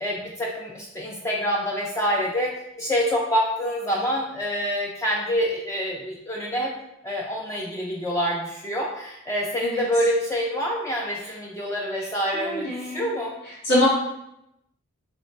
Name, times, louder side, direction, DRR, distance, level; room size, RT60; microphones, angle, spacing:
voice 1, 0.0-2.5 2.8-6.7 7.0-13.3, equal, 15° left, -2 dB, 0.3 m, -26 dB
voice 2, 12.3-13.1 13.6-13.8, left 1 dB, 50° left, -8 dB, 0.9 m, -23 dB
3.1 x 2.2 x 4.1 m, 0.82 s
head